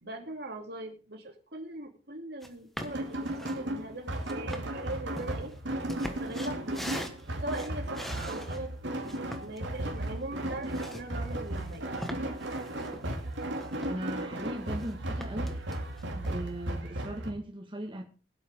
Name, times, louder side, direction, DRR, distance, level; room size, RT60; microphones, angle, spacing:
voice 1, 0.0-5.5 6.0-6.9 7.4-8.7 9.0-11.9, right 1 dB, 60° right, 2.8 m, -40 dB
sound 1, 2.4-2.5 2.8-3.6 4.2-8.6 9.0-14.2 14.5-14.9 15.2-16.4, equal, ahead, 1.3 m, -42 dB
sound 2, 2.8-17.3, right 1 dB, 85° right, 2.5 m, -35 dB
voice 2, 13.9-15.6 16.1-18.0, right 1 dB, 30° right, 1.7 m, -38 dB
21.5 x 8.1 x 3.6 m
head